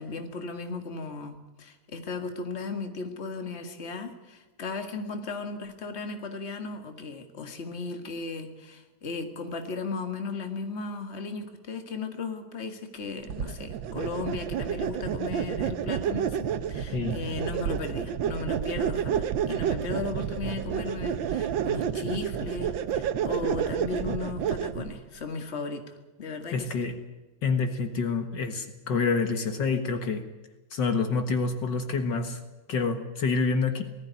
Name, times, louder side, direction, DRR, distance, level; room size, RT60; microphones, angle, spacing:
voice 1, 0.0-25.8 26.2-26.8, left 4 dB, 35° left, 6 dB, 2.1 m, -36 dB
sound 1, 13.3-24.9, right 8 dB, 85° right, 1.7 m, -30 dB
voice 2, 26.5-26.9 27.4-30.2 30.7-32.4 32.7-33.8, left 4 dB, 65° left, 7 dB, 2.1 m, -27 dB
19.5 x 14.0 x 9.5 m, 1.2 s
omnidirectional pair, 2.1 m